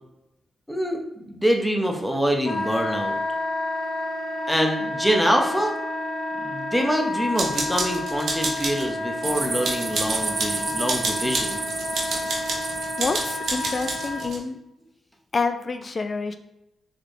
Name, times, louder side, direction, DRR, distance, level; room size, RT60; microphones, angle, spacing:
voice 1, 0.7-3.1 4.5-5.7 6.3-11.6, equal, 5° left, 2 dB, 0.9 m, -25 dB
Wind instrument woodwind instrument, 2.4-14.2, left 1 dB, 70° left, 0.8 m, -30 dB
sound 1, 7.4-8.9 9.2-14.4, right 3 dB, 70° right, 0.9 m, -30 dB
Crickets on the dune, 9.2-14.1, right 4 dB, 50° right, 0.4 m, -32 dB
voice 2, 13.0-14.6 15.3-16.4, left 4 dB, 45° left, 9 dB, 0.3 m, -27 dB
3.7 x 2.9 x 3.4 m, 0.89 s
supercardioid pair, 40°, 0 cm